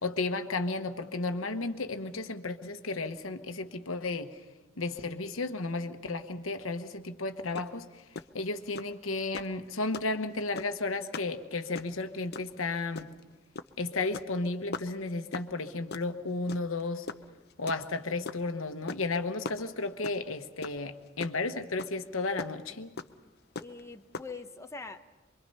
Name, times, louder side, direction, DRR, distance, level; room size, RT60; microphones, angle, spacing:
voice 1, 0.0-4.3 4.8-7.9 8.3-13.1 13.8-17.1 17.6-22.9, left 3 dB, 85° left, 8 dB, 1.2 m, -33 dB
sound 1, 7.6-7.7 8.0-8.2 8.8-8.9 9.3-9.6 9.9-10.1 10.6-10.8 11.1-11.3 11.6-12.0 12.3-12.5 13.0-13.2 13.6-13.7 14.0-14.3 14.7-14.9 15.3-15.5 15.9-16.1 16.5-16.8 17.1-18.4 18.9-19.2 19.4-20.3 20.6-20.8 21.1-21.5 21.8-21.9 22.4-22.5 23.0-23.1 23.6-23.8 24.1-24.3, left 4 dB, 55° left, 0.7 m, -38 dB
voice 2, 23.6-25.1, left 4 dB, 15° left, 5 dB, 0.8 m, -43 dB
25.0 x 23.0 x 5.5 m, 1.2 s
head